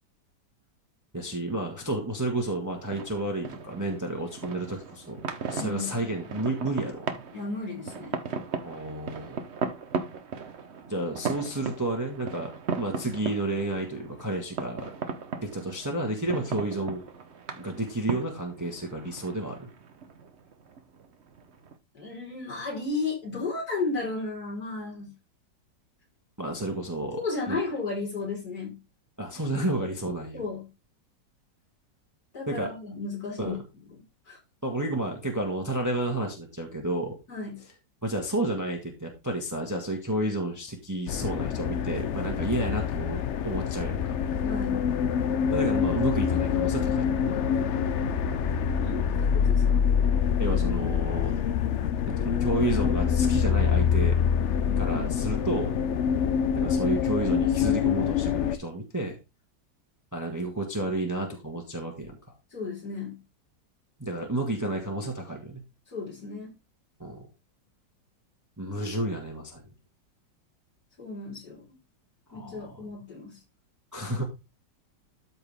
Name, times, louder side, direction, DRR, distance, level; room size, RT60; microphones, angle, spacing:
voice 1, 1.1-7.2 8.6-9.4 10.9-12.5 12.8-14.9 15.4-17.0 17.5-19.7 26.4-27.2 27.5-27.6 29.2-30.4 32.5-32.7 33.4-33.6 34.6-37.2 38.0-44.2 45.4-47.6 50.4-51.4 52.1-54.2 54.8-55.7 56.5-59.2 60.1-62.2 64.0-65.6 67.0-67.3 68.6-69.7 72.3-72.9 73.9-74.2, right 1 dB, 10° right, 1.4 m, -31 dB
sound 1, 2.5-21.8, right 5 dB, 45° right, 0.9 m, -37 dB
voice 2, 5.6-5.9 7.3-8.2 21.9-25.1 27.1-28.8 30.3-30.7 32.3-33.6 34.3-34.4 37.3-37.6 44.5-44.9 48.8-49.9 54.8-55.1 62.5-63.2 65.9-66.5 71.0-71.8 72.3-73.4, left 3 dB, 55° left, 5.0 m, -34 dB
sound 2, 41.1-58.6, left 7 dB, 75° left, 0.6 m, -25 dB
13.0 x 4.4 x 3.5 m
omnidirectional pair, 2.0 m